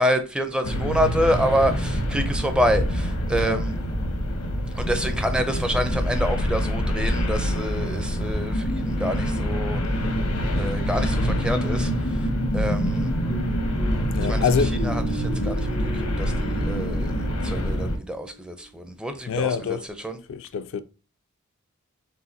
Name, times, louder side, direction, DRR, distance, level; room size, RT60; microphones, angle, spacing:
voice 1, 0.0-3.8 4.7-9.8 10.5-12.3 12.5-13.1 14.3-14.5 14.8-15.7 15.9-19.8 20.0-20.2, equal, 5° right, 0.4 m, -27 dB
sound 1, 0.6-18.0, equal, 90° left, 1.0 m, -25 dB
sound 2, 13.1-18.8, right 2 dB, 80° right, 1.6 m, -37 dB
voice 2, 14.1-14.8 19.3-19.8 20.3-20.8, left 6 dB, 60° left, 0.3 m, -26 dB
4.8 x 3.3 x 2.6 m
head